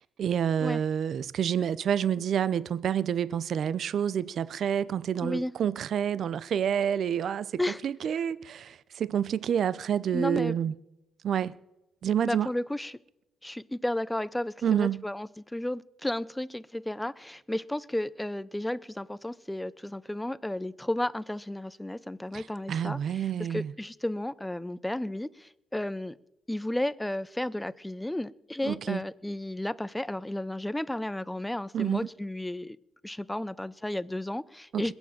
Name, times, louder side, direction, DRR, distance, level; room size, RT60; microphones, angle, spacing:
voice 1, 0.0-10.8 11.2-11.5 12.0-12.5 14.6-15.0 22.3-23.7 28.6-29.0 31.7-32.1 34.7-34.9, right 9 dB, 60° right, 0.5 m, -28 dB
voice 2, 5.2-5.5 7.6-7.8 10.1-10.5 12.2-12.9 13.4-23.0 23.5-26.1 26.5-32.8 33.0-34.9, left 1 dB, 10° left, 0.6 m, -33 dB
21.5 x 7.1 x 7.4 m
cardioid pair, 90°, 0 cm